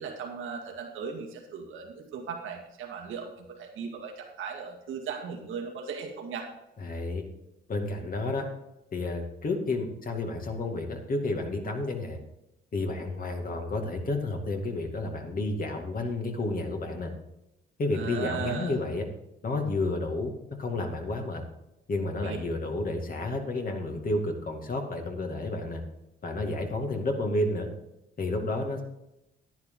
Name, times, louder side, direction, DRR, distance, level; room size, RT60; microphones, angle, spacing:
voice 1, 0.0-6.5 17.9-18.7 22.2-22.4, right 6 dB, 85° right, 2 dB, 1.9 m, -37 dB
voice 2, 6.8-7.2 7.7-8.5 8.9-12.2 12.7-17.1 17.8-19.1 19.4-20.3 20.6-21.4 21.9-25.8 26.2-27.7 28.2-28.8, left 2 dB, 45° left, 3 dB, 2.2 m, -31 dB
10.5 x 10.5 x 3.8 m, 0.89 s
cardioid pair, 90°, 20 cm